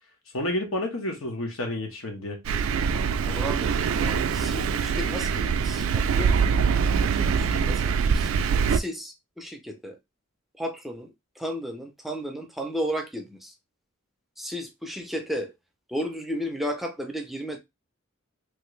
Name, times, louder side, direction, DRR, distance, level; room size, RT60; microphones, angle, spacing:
voice 1, 0.3-2.4, left 1 dB, 80° left, 1.1 m, -30 dB
Thunder, 2.4-8.8, right 6 dB, 80° right, 0.3 m, -24 dB
voice 2, 3.3-6.4 7.1-8.3 8.7-10.0 10.6-13.5 14.4-15.5 15.9-17.6, equal, ahead, 0.4 m, -34 dB
3.2 x 2.4 x 3.1 m
head